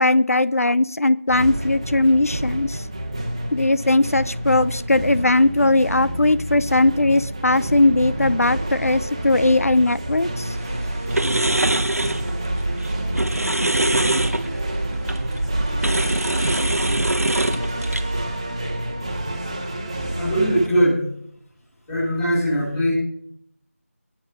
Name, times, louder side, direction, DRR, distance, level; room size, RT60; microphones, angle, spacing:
voice 1, 0.0-2.9 3.5-10.6, left 2 dB, 75° left, 16 dB, 0.7 m, -19 dB
sound 1, 1.3-20.7, right 1 dB, 20° right, 1.8 m, -29 dB
sound 2, 10.5-18.2, right 1 dB, 85° right, 1.6 m, -23 dB
voice 2, 20.1-21.1 21.9-22.9, equal, 5° left, -11 dB, 4.7 m, -20 dB
22.5 x 9.5 x 6.1 m, 0.68 s
figure-of-eight pair, 175°, 8 cm